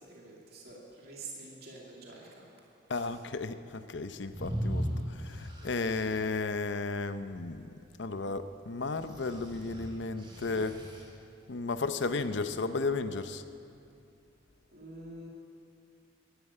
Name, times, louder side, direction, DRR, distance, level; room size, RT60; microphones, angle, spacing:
voice 1, 0.0-2.4 14.7-15.3, right 3 dB, 55° right, -3 dB, 2.5 m, -47 dB
voice 2, 2.9-7.7 8.0-10.8 11.5-13.4, left 3 dB, 70° left, 11 dB, 0.7 m, -34 dB
sound 1, 4.3-6.2 9.0-11.0, equal, 25° right, 2.4 m, -37 dB
13.0 x 11.5 x 8.7 m, 2.5 s
head